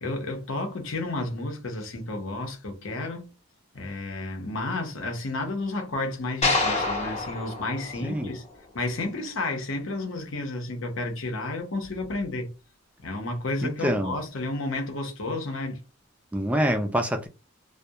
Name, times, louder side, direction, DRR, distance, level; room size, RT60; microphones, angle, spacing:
voice 1, 0.0-3.3 3.7-8.4 8.7-12.5 13.0-15.8, left 2 dB, 70° left, 0.7 m, -31 dB
sound 1, 6.4-8.8, left 2 dB, 30° left, 0.7 m, -28 dB
voice 2, 13.6-14.1 16.3-17.3, equal, 5° right, 0.3 m, -25 dB
2.3 x 2.1 x 2.7 m
head